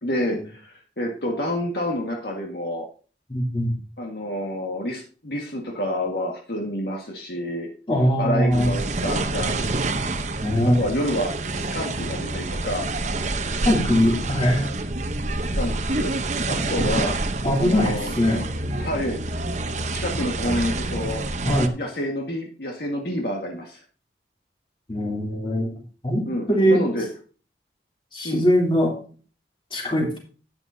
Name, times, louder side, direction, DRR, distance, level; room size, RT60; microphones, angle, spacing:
voice 1, 0.0-2.8 4.0-7.7 8.2-9.8 10.6-12.9 15.5-16.1 16.5-17.1 17.6-18.1 18.8-19.2 19.9-21.2 21.7-23.8 26.3-26.4 26.7-27.1 28.2-28.5, left 1 dB, 60° left, 0 dB, 1.7 m, -28 dB
voice 2, 3.3-3.8 7.9-8.7 10.4-10.8 13.6-14.7 17.4-18.8 21.4-21.7 24.9-25.7 26.0-26.8 28.1-28.9 29.7-30.2, equal, 30° left, -1 dB, 3.1 m, -21 dB
sound 1, 8.5-21.7, right 2 dB, 40° right, 0.8 m, -27 dB
12.0 x 9.2 x 2.7 m, 0.39 s
head